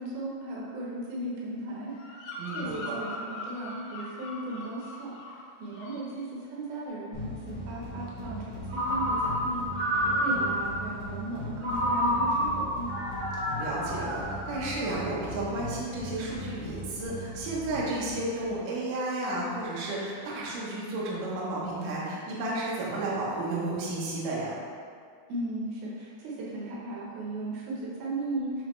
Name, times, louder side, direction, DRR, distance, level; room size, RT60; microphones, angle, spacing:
voice 1, 0.0-1.9 2.5-5.1 5.6-9.6 10.2-12.9 25.3-28.6, right 2 dB, 90° right, -5 dB, 2.9 m, -36 dB
Bird vocalization bird call bird song, 1.9-5.4 5.7-6.1, left 1 dB, 85° left, 2.6 m, -41 dB
voice 2, 2.4-3.0 10.0-10.4 13.6-24.6, right 2 dB, 70° right, -6 dB, 2.6 m, -32 dB
sound 1, 7.1-18.6, left 1 dB, 65° left, 2.7 m, -40 dB
Ringtone, 8.7-10.8 11.6-15.0, equal, 50° right, 1.7 m, -29 dB
9.4 x 3.5 x 3.1 m, 2.1 s
omnidirectional pair, 4.1 m